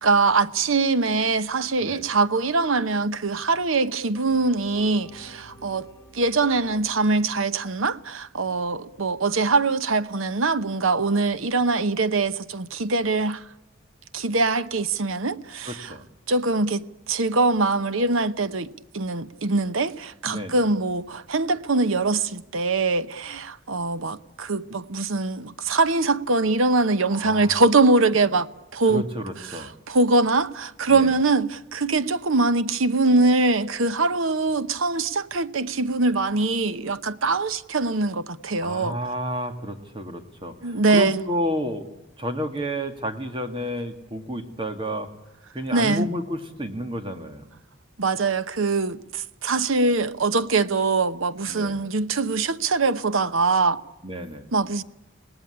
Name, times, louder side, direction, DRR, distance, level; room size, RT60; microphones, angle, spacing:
voice 1, 0.0-5.9 6.1-13.4 14.1-15.9 16.3-29.1 29.5-39.0 40.6-41.2 45.7-46.1 48.0-53.8 54.5-54.8, right 3 dB, 80° right, 1.0 m, -23 dB
sound 1, 4.3-8.3, equal, 15° left, 3.0 m, -49 dB
voice 2, 15.7-16.1 20.2-20.6 27.1-27.6 28.9-29.7 30.9-31.1 38.6-45.1 45.5-47.5 51.5-51.8 54.0-54.5, equal, 25° right, 2.1 m, -31 dB
27.5 x 19.0 x 9.9 m
head